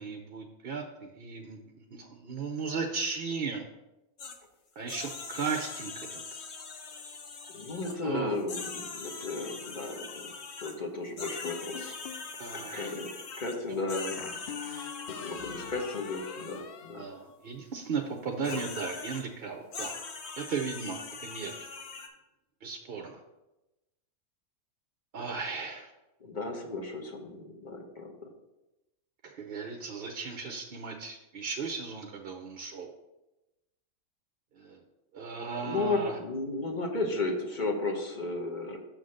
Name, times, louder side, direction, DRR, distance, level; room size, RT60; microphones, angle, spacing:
voice 1, 0.0-1.6 1.9-3.6 4.8-6.4 8.0-8.3 12.4-13.0 17.0-20.0 20.4-21.7 22.6-23.2 25.1-25.9 29.2-32.9 34.6-34.8 35.1-36.2, right 5 dB, 55° right, 4 dB, 0.7 m, -36 dB
sound 1, 4.2-4.4 4.9-8.0 8.4-10.8 11.2-16.6 18.4-19.2 19.7-22.1, left 4 dB, 55° left, 1.0 m, -42 dB
voice 2, 7.5-10.3 10.6-12.0 12.5-13.1 13.4-14.3 15.1-17.1 18.5-18.6 26.2-28.3 35.6-38.8, left 3 dB, 35° left, 2 dB, 1.1 m, -34 dB
sound 2, 11.4-12.3 14.2-17.8, left 8 dB, 90° left, 0.5 m, -43 dB
6.9 x 3.9 x 6.4 m, 0.98 s
omnidirectional pair, 1.5 m